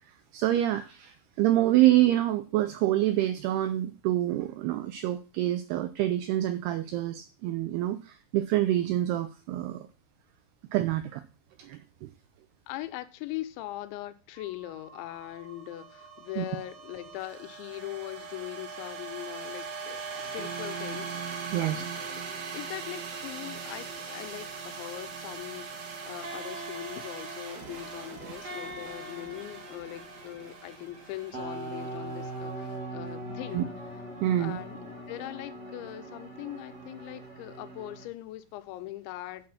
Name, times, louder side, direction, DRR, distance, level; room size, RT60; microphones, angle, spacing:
voice 1, 0.3-9.9 10.7-11.2 11.6-12.1 16.4-16.5 21.5-21.8 33.5-33.6 34.2-34.6, right 14 dB, 90° right, 2.3 m, -26 dB
voice 2, 12.7-21.9 22.1-22.2 22.5-33.7 34.4-39.5, left 15 dB, 80° left, 3.1 m, -41 dB
sound 1, 14.4-32.7, right 5 dB, 65° right, 3.6 m, -42 dB
sound 2, 20.2-38.1, right 2 dB, 30° right, 2.1 m, -42 dB
8.6 x 6.4 x 5.7 m
omnidirectional pair, 5.3 m